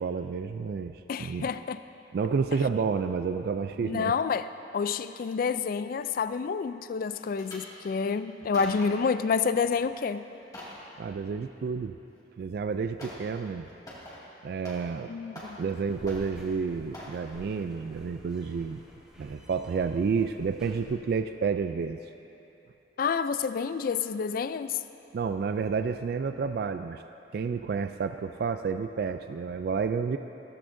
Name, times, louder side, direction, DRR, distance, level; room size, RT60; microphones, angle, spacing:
voice 1, 0.0-1.5 2.1-4.1 11.0-12.0 12.4-13.7 14.4-15.1 15.6-18.8 19.2-22.0 25.1-27.0 27.3-30.2, right 5 dB, 60° right, 8 dB, 0.3 m, -30 dB
voice 2, 1.1-1.8 3.8-4.5 4.7-10.2 15.1-15.6 23.0-24.8, left 5 dB, 50° left, 13 dB, 0.3 m, -29 dB
sound 1, 7.1-7.7 8.3-9.1 9.6-9.9 10.2-10.8 12.2-12.3 13.0-13.3 13.6-15.0 15.3-15.8 16.1-16.5 16.9-17.2 17.7-17.9 18.2-18.3, left 1 dB, 20° left, 2.1 m, -44 dB
sound 2, 15.9-20.9, equal, 5° right, 1.8 m, -50 dB
15.5 x 14.0 x 2.6 m, 2.9 s
head